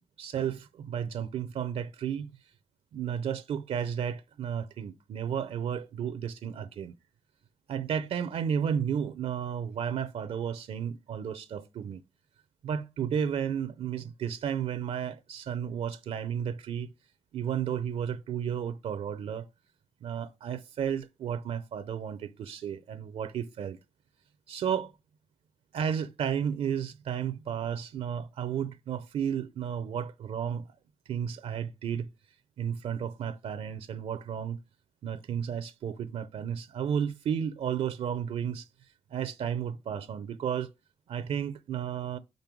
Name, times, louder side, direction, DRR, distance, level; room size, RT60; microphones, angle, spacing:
voice 1, 0.2-2.3 2.9-6.9 7.7-12.0 12.6-16.9 17.3-19.5 20.0-23.8 24.5-24.9 25.7-30.7 31.1-32.1 32.6-34.6 35.0-38.7 39.1-40.7 41.1-42.2, right 8 dB, 75° right, 0.6 m, -33 dB
5.3 x 5.3 x 6.1 m
cardioid pair, 95°, 11 cm